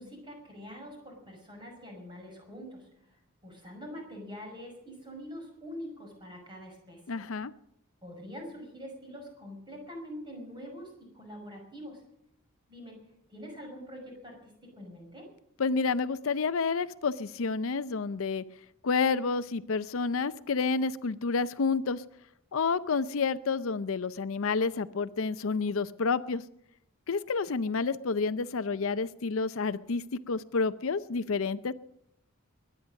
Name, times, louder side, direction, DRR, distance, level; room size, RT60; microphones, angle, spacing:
voice 1, 0.0-2.9 3.4-7.0 8.0-12.0 12.7-13.0 13.3-15.3, equal, 20° right, 2 dB, 5.6 m, -44 dB
voice 2, 7.1-7.5 15.6-18.4 18.8-22.0 22.5-26.4 27.1-31.7, left 4 dB, 70° left, 14 dB, 0.6 m, -29 dB
22.0 x 9.9 x 6.3 m, 0.77 s
head